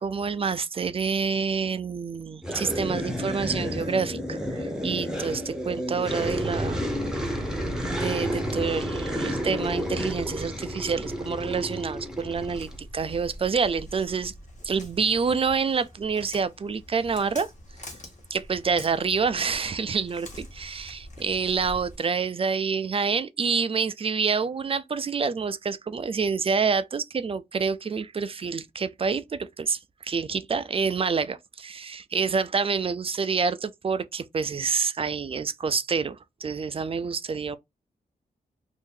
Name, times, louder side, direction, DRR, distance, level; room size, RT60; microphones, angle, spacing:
voice 1, 0.0-6.8 7.9-14.3 14.6-17.5 18.3-37.6, right 5 dB, 35° right, 0.4 m, -27 dB
sound 1, 2.4-12.8, equal, 5° right, 0.8 m, -30 dB
Walk footsteps, 12.3-22.0, left 1 dB, 45° left, 1.3 m, -45 dB
2.7 x 2.5 x 3.7 m
wide cardioid pair, 95°, 17 cm